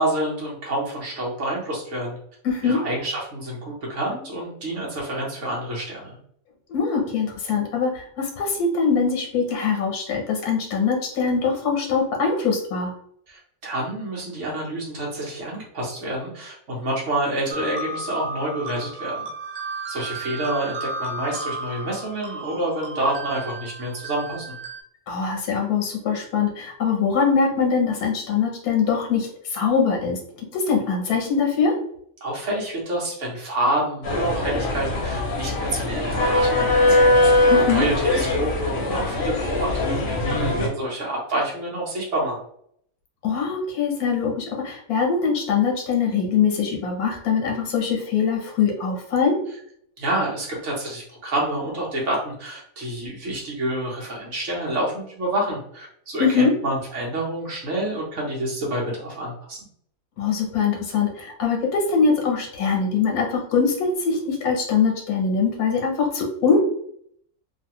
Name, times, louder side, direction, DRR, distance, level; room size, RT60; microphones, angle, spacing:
voice 1, 0.0-2.2 2.6-6.2 13.3-19.3 19.9-24.5 32.2-37.4 37.7-42.4 50.0-59.6, right 1 dB, 60° right, -3 dB, 1.2 m, -28 dB
voice 2, 2.4-2.9 6.7-12.9 25.1-30.2 30.5-31.8 37.5-37.9 43.2-49.4 56.2-56.5 60.2-66.6, left 5 dB, 90° left, 0 dB, 1.3 m, -22 dB
sound 1, 17.5-24.8, right 2 dB, 85° right, 1.2 m, -34 dB
sound 2, 34.0-40.7, left 2 dB, 55° left, 0.9 m, -21 dB
2.8 x 2.4 x 2.9 m, 0.67 s
omnidirectional pair, 1.5 m